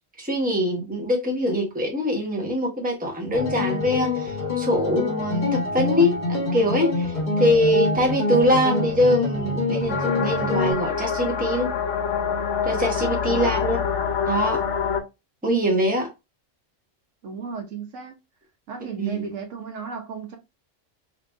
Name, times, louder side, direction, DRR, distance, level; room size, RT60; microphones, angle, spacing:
voice 1, 0.2-11.7 12.6-13.8 14.3-14.6 15.4-16.1 19.0-19.2, equal, 5° right, 1.0 m, -23 dB
sound 1, 3.3-10.7, left 3 dB, 30° left, 1.1 m, -26 dB
sound 2, 9.9-15.0, left 7 dB, 70° left, 1.0 m, -26 dB
voice 2, 13.3-13.6 17.2-18.1 18.7-20.4, right 5 dB, 75° right, 1.1 m, -34 dB
2.9 x 2.9 x 3.4 m
omnidirectional pair, 1.3 m